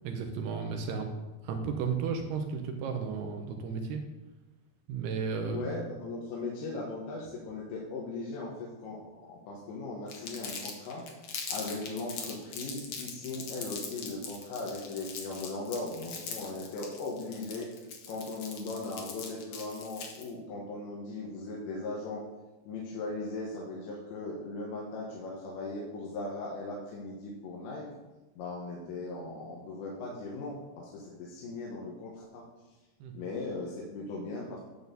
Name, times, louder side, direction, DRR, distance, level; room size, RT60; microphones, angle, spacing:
voice 1, 0.0-1.1 1.4-4.0 4.9-5.8 33.0-33.1, right 5 dB, 80° right, 4 dB, 2.6 m, -33 dB
voice 2, 5.5-11.1 11.5-17.7 18.1-22.2 22.7-27.9 28.4-32.4 33.1-34.6, left 3 dB, 90° left, -4 dB, 3.5 m, -38 dB
Crumpling crinkling, 10.1-20.3, left 6 dB, 65° left, 1.8 m, -41 dB
11.0 x 4.3 x 6.8 m, 1.1 s
omnidirectional pair, 5.0 m